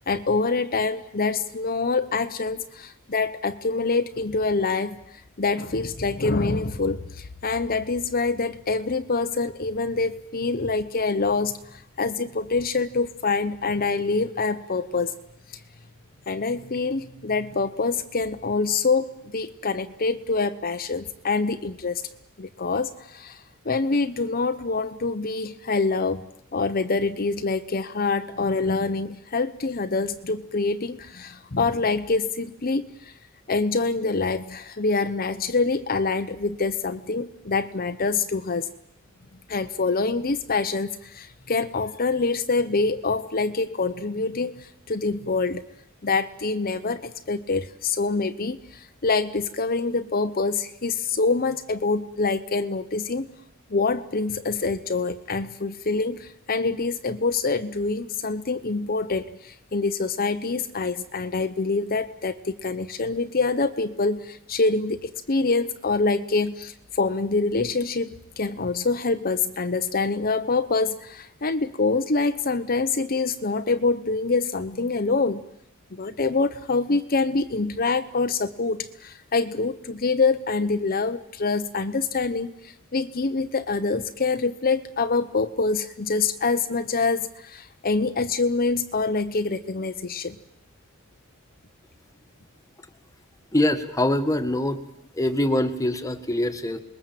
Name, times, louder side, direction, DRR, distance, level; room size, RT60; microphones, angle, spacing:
voice 1, 0.1-15.1 16.3-19.1 19.3-22.0 22.4-33.1 33.5-38.7 39.5-45.6 46.0-53.3 53.7-75.4 75.9-90.4, left 3 dB, 40° left, 8 dB, 0.9 m, -25 dB
voice 2, 93.5-94.8 95.1-96.8, left 1 dB, 15° left, 7 dB, 1.6 m, -24 dB
28.0 x 21.0 x 7.6 m, 0.76 s
head